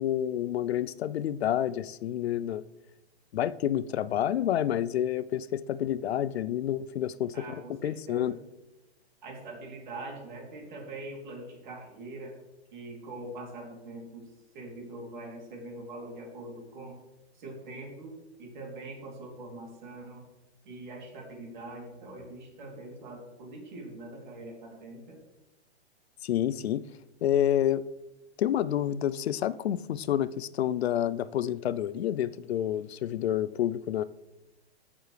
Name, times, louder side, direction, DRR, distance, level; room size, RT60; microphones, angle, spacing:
voice 1, 0.0-2.6 3.3-8.3 26.2-26.8 27.2-27.8 28.4-34.0, left 11 dB, 70° left, 0.5 m, -29 dB
voice 2, 7.3-8.4 9.2-12.4 12.7-17.0 17.3-20.2 20.6-25.2, right 2 dB, 45° right, 3.2 m, -43 dB
15.5 x 7.0 x 3.3 m
hypercardioid pair, 180°, 33 cm